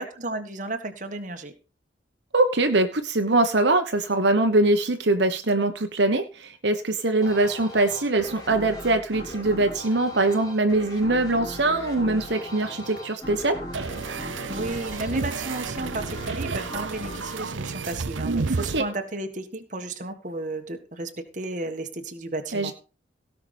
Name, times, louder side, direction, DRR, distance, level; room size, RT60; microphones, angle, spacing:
voice 1, 0.0-1.5 14.5-22.7, right 2 dB, 40° right, 6 dB, 1.6 m, -33 dB
voice 2, 2.3-13.6 18.7-18.8 22.5-22.7, right 2 dB, 70° right, 6 dB, 1.2 m, -22 dB
sound 1, 7.2-18.4, equal, 20° left, 4.2 m, -39 dB
sound 2, 13.7-18.8, right 4 dB, 90° right, 0.7 m, -31 dB
17.0 x 5.9 x 5.3 m, 0.33 s
head